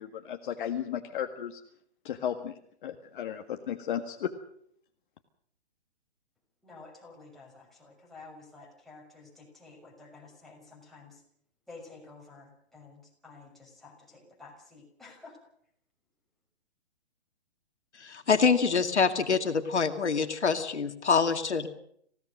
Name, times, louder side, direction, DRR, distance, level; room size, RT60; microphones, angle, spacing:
voice 1, 0.0-1.6 2.0-2.5 2.8-4.3, left 9 dB, 50° left, 5 dB, 1.8 m, -34 dB
voice 2, 6.6-11.2 11.7-15.4, left 3 dB, ahead, -3 dB, 6.0 m, -51 dB
voice 3, 18.0-21.7, left 5 dB, 85° left, 6 dB, 2.3 m, -25 dB
27.0 x 17.0 x 6.4 m, 0.68 s
hypercardioid pair, 140°, 33 cm